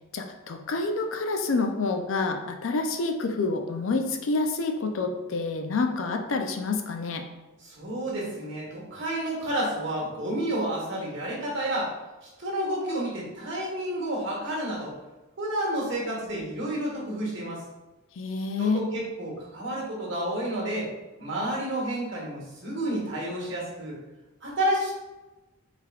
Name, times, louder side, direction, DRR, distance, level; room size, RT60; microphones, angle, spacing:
voice 1, 0.1-7.3 18.2-18.9, left 3 dB, 70° left, 5 dB, 0.5 m, -28 dB
voice 2, 7.6-11.9 12.2-14.9 15.4-17.6 18.6-20.9 21.2-24.0 24.4-24.9, right 1 dB, 60° right, -3 dB, 1.3 m, -30 dB
4.6 x 3.4 x 2.4 m, 1.1 s
head